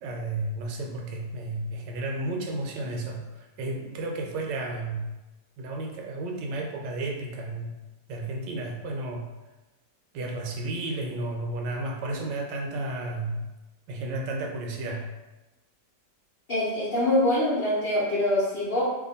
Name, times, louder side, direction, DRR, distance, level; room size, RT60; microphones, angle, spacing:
voice 1, 0.0-5.0 5.6-7.7 8.1-9.3 10.1-13.4 13.9-15.1, right 2 dB, 80° right, 1 dB, 1.3 m, -32 dB
voice 2, 16.5-18.8, left 1 dB, 55° left, -9 dB, 0.6 m, -24 dB
2.8 x 2.5 x 3.9 m, 1.0 s
omnidirectional pair, 1.9 m